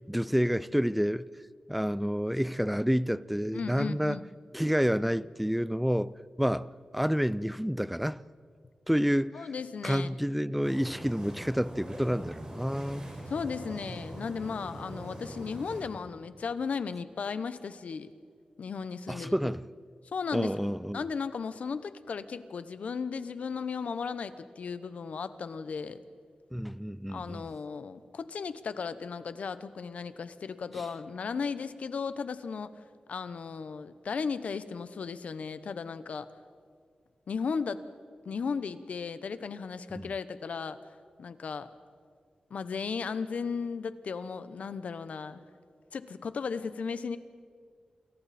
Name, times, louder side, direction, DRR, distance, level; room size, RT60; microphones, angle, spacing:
voice 1, 0.1-1.3 1.7-4.2 4.5-8.2 8.9-9.5 9.8-13.1 19.1-19.7 20.3-21.0 26.5-27.5 30.7-30.9 40.0-40.1, equal, ahead, 0.4 m, -29 dB
voice 2, 3.5-4.2 9.3-10.1 13.3-18.1 18.6-19.3 20.0-20.5 20.9-26.0 27.1-32.7 33.1-36.3 37.3-37.9 38.3-40.8 41.2-41.7 42.5-45.4 45.9-47.2, left 5 dB, 75° left, 1.0 m, -35 dB
sound 1, 10.6-15.8, right 1 dB, 35° right, 6.9 m, -43 dB
28.5 x 22.0 x 4.3 m
wide cardioid pair, 90°, 2 cm